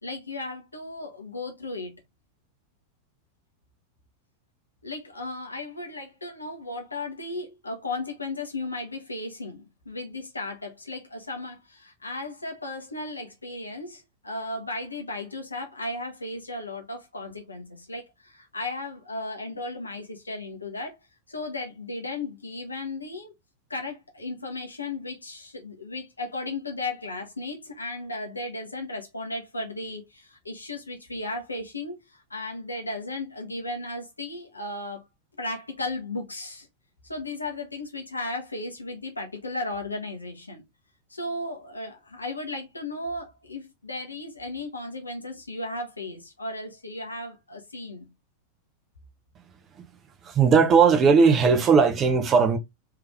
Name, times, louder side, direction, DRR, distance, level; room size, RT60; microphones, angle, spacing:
voice 1, 0.0-1.9 4.8-20.9 21.3-23.3 23.7-35.1 35.4-36.7 37.0-40.6 41.1-48.1, left 2 dB, 80° left, 1.1 m, -35 dB
voice 2, 50.2-52.6, right 5 dB, 25° right, 0.9 m, -18 dB
3.6 x 3.4 x 3.5 m
figure-of-eight pair, 90°, 0 cm